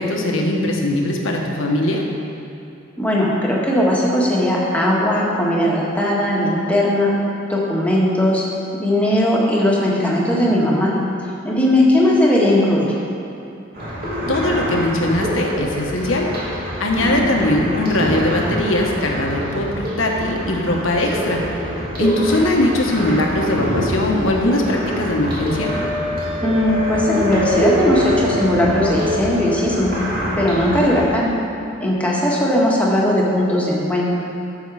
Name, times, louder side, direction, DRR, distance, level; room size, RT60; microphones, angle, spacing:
voice 1, 0.0-2.0 14.3-16.3 16.5-25.7, left 1 dB, 75° left, 0 dB, 1.3 m, -20 dB
voice 2, 3.0-7.1 7.5-8.4 8.7-10.9 11.4-12.9 16.9-17.2 26.4-29.9 30.3-31.3 31.8-34.1, left 1 dB, 5° left, -5 dB, 1.7 m, -18 dB
sound 1, 13.7-31.1, equal, 50° right, 2.5 m, -26 dB
Wind instrument woodwind instrument, 25.5-29.7, left 2 dB, 75° right, 1.9 m, -27 dB
13.0 x 6.3 x 4.9 m, 2.7 s
head